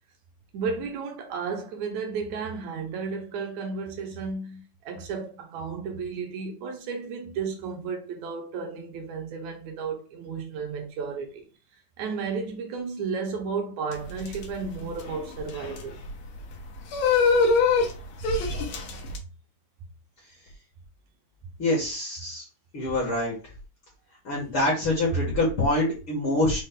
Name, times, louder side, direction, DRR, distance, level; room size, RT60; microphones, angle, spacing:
voice 1, 0.5-11.5 12.0-16.0 25.1-25.2, right 5 dB, 70° right, 2.1 m, -33 dB
sound 1, 13.9-19.2, left 4 dB, 70° left, 1.7 m, -25 dB
voice 2, 21.6-22.5 22.7-23.4 24.2-26.6, left 1 dB, 50° left, 1.7 m, -25 dB
5.6 x 2.5 x 3.8 m
omnidirectional pair, 3.8 m